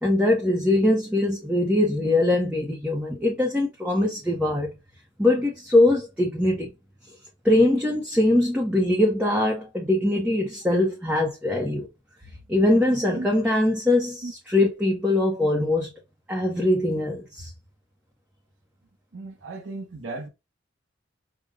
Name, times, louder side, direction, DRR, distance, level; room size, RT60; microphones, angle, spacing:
voice 1, 0.0-4.7 5.2-6.7 7.4-11.9 12.5-15.9 16.3-17.5, left 1 dB, 5° right, 0.7 m, -22 dB
voice 2, 19.1-20.3, right 2 dB, 85° right, 0.9 m, -35 dB
5.2 x 2.2 x 3.6 m
head